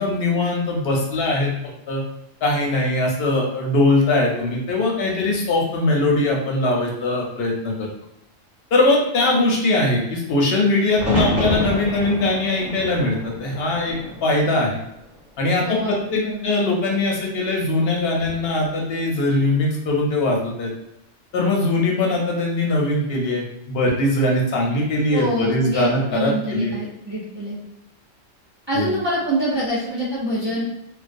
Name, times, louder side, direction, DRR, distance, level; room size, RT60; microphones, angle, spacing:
voice 1, 0.0-1.5 1.9-2.0 2.4-7.9 8.7-14.8 15.4-20.7 21.3-26.7 28.8-29.0, left 2 dB, 60° left, -1 dB, 0.7 m, -21 dB
sound 1, 10.9-15.0 15.4-16.1 18.0-18.5, equal, 15° left, 0.6 m, -28 dB
voice 2, 15.6-16.5 25.1-27.6 28.7-30.6, right 1 dB, 45° right, -8 dB, 0.3 m, -26 dB
2.3 x 2.2 x 2.5 m, 0.86 s
omnidirectional pair, 1.3 m